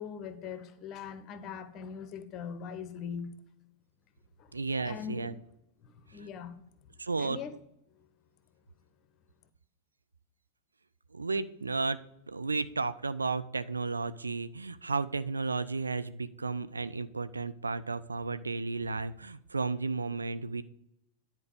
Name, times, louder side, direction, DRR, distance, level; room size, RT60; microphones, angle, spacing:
voice 1, 0.0-3.4 4.4-4.5 4.8-5.4 5.8-6.6 7.2-7.5 7.9-8.1, left 7 dB, 35° left, 11 dB, 0.9 m, -41 dB
voice 2, 4.5-5.3 7.0-7.4 11.1-12.0 12.3-20.6, right 4 dB, 80° right, 13 dB, 0.4 m, -33 dB
10.0 x 4.5 x 5.1 m, 0.80 s
figure-of-eight pair, 90°, 0 cm